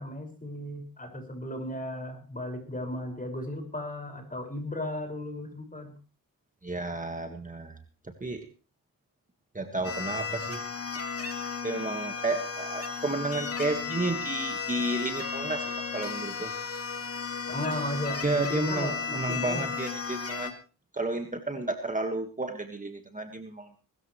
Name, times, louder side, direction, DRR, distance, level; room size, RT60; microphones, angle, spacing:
voice 1, 0.0-5.9 17.5-19.7, left 1 dB, 25° left, 4 dB, 5.7 m, -35 dB
voice 2, 6.6-7.8 8.2-8.5 9.5-10.6 11.6-16.5 18.2-20.5 20.9-23.8, right 2 dB, 25° right, 5 dB, 1.7 m, -32 dB
sound 1, 9.8-20.5, left 5 dB, 40° left, 2.2 m, -34 dB
22.0 x 13.5 x 3.2 m, 0.36 s
cardioid pair, 80°, 35 cm